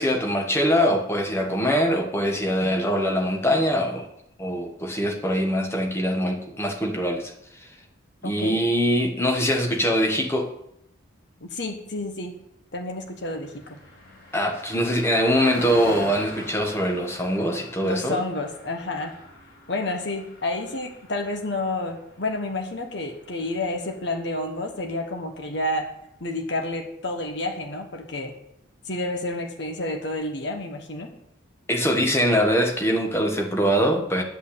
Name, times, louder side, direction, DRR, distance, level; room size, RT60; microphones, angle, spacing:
voice 1, 0.0-4.1 4.4-7.3 8.2-10.5 14.3-18.2 31.7-34.2, equal, 15° left, 2 dB, 1.3 m, -23 dB
voice 2, 8.2-8.6 11.4-12.4 12.7-13.8 17.8-19.1 19.7-25.9 26.2-28.3 28.8-31.1, left 2 dB, 60° left, 4 dB, 1.3 m, -30 dB
Car passing by, 12.7-24.5, left 1 dB, 90° left, 3.6 m, -42 dB
10.5 x 5.5 x 8.5 m, 0.78 s
head